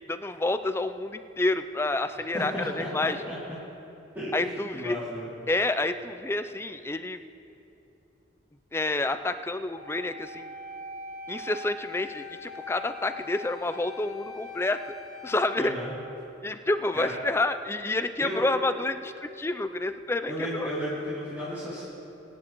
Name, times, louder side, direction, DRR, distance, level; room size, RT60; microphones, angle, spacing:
voice 1, 0.1-3.2 4.3-5.0 5.5-7.2 8.7-10.5 11.3-15.0 15.2-15.7 16.4-20.7, left 2 dB, 15° left, 10 dB, 0.3 m, -29 dB
voice 2, 2.3-3.4 4.1-5.3 15.6-15.9 16.9-17.1 18.2-18.4 20.3-21.8, equal, 10° right, -13 dB, 2.7 m, -33 dB
Wind instrument woodwind instrument, 9.7-15.7, left 3 dB, 35° left, 1.9 m, -42 dB
23.0 x 10.0 x 3.0 m, 2.9 s
head